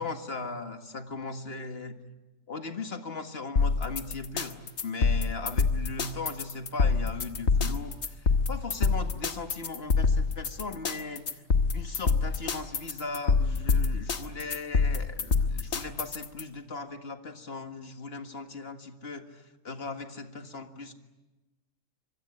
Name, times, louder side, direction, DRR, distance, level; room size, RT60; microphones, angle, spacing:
voice 1, 0.0-2.0 2.5-4.6 4.8-11.4 11.7-20.9, left 3 dB, 50° left, 7 dB, 2.0 m, -38 dB
sound 1, 3.6-16.4, left 4 dB, 90° left, 1.9 m, -26 dB
26.0 x 22.5 x 9.9 m, 1.1 s
omnidirectional pair, 1.4 m